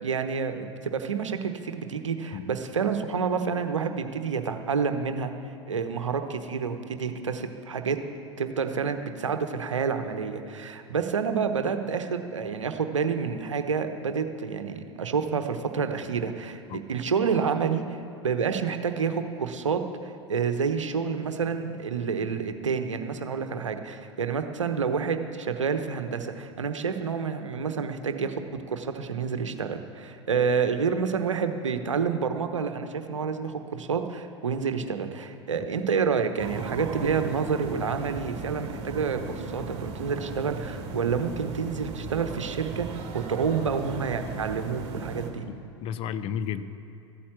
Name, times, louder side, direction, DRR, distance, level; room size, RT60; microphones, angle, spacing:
voice 1, 0.0-5.3 5.7-8.0 8.4-17.8 18.2-28.3 28.7-45.4, right 6 dB, 80° right, 8 dB, 1.0 m, -28 dB
sound 1, 36.4-45.3, right 4 dB, 40° right, 2.0 m, -36 dB
voice 2, 45.5-46.6, left 8 dB, 40° left, 12 dB, 0.7 m, -33 dB
14.0 x 8.7 x 7.3 m, 2.8 s
figure-of-eight pair, 90°, 16 cm